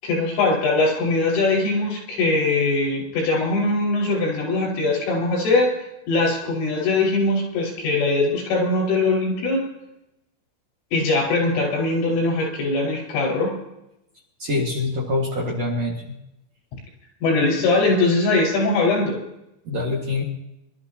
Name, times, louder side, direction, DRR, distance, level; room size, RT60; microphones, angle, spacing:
voice 1, 0.0-5.7 6.1-9.6 10.9-13.5 17.2-19.2, left 3 dB, 85° left, -2 dB, 7.7 m, -21 dB
voice 2, 14.4-16.2 19.7-20.2, left 2 dB, 50° right, -3 dB, 2.1 m, -25 dB
25.5 x 12.5 x 2.9 m, 0.86 s
omnidirectional pair, 5.5 m